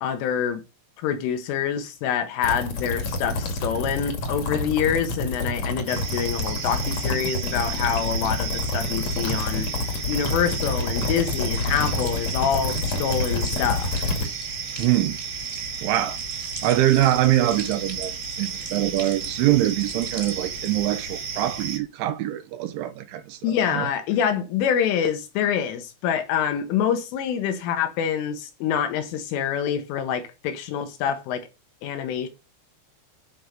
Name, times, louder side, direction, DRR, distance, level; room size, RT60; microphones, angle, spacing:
voice 1, 0.0-0.6 1.0-9.7 10.1-14.1 23.4-31.5 31.8-32.3, left 8 dB, 75° left, 3.9 m, -26 dB
sound 1, 2.4-14.3, left 2 dB, 45° left, 2.4 m, -28 dB
sound 2, 5.9-21.8, right 6 dB, 65° right, 1.7 m, -33 dB
sound 3, 11.2-21.0, right 1 dB, 15° right, 1.1 m, -43 dB
voice 2, 14.8-15.2 15.8-16.2 16.6-23.9, right 14 dB, 80° right, 3.1 m, -23 dB
11.0 x 5.6 x 6.4 m
omnidirectional pair, 6.0 m